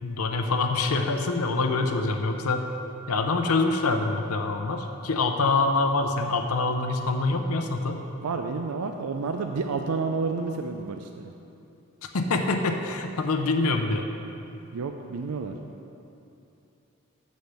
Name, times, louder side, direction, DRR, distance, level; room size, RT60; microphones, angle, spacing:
voice 1, 0.0-2.7 3.1-8.0 12.1-14.1, left 3 dB, 85° left, 4 dB, 0.6 m, -25 dB
voice 2, 8.2-11.3 14.7-15.5, right 4 dB, 85° right, 5 dB, 0.4 m, -30 dB
6.6 x 6.4 x 6.8 m, 2.8 s
head